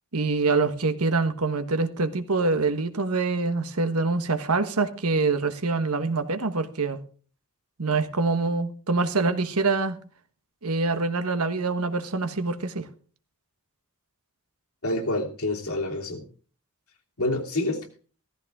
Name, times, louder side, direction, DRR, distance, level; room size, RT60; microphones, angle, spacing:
voice 1, 0.1-7.0 7.8-10.0 10.6-12.9, right 3 dB, 85° right, 1.4 m, -25 dB
voice 2, 14.8-16.2 17.2-17.8, left 2 dB, 75° left, 3.0 m, -27 dB
15.5 x 14.5 x 3.6 m
head